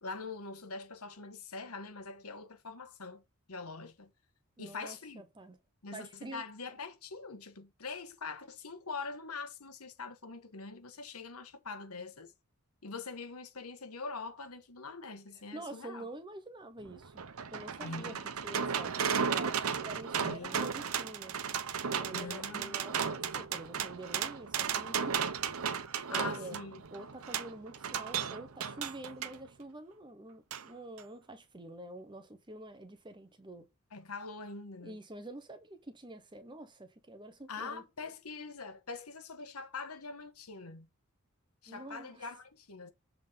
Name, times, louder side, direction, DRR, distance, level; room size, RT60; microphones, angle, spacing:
voice 1, 0.0-3.2 3.5-4.1 4.6-5.2 5.8-12.3 12.8-16.1 17.8-18.2 20.2-20.7 22.1-22.8 26.1-26.8 33.9-35.0 37.5-40.9 41.6-42.9, left 4 dB, 80° left, 1.5 m, -43 dB
voice 2, 4.6-5.6 5.9-6.4 15.5-17.2 17.5-18.2 18.4-21.4 21.9-25.3 25.9-26.6 26.9-33.7 34.8-37.8 41.7-42.3, right 1 dB, 20° right, 0.9 m, -47 dB
sound 1, 16.8-29.4 30.5-30.6 31.0-31.1, right 7 dB, 75° right, 0.7 m, -35 dB
7.4 x 3.7 x 5.2 m
head